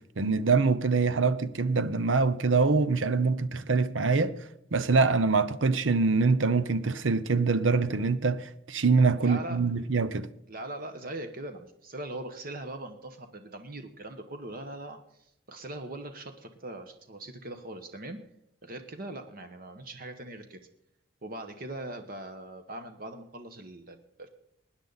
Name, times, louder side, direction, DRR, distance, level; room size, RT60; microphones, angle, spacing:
voice 1, 0.2-4.3 4.7-10.3, right 4 dB, 85° right, 0.8 m, -24 dB
voice 2, 9.2-9.6 10.5-18.2 18.6-20.6 21.2-24.3, right 1 dB, 50° right, 1.1 m, -41 dB
20.0 x 9.9 x 4.0 m
head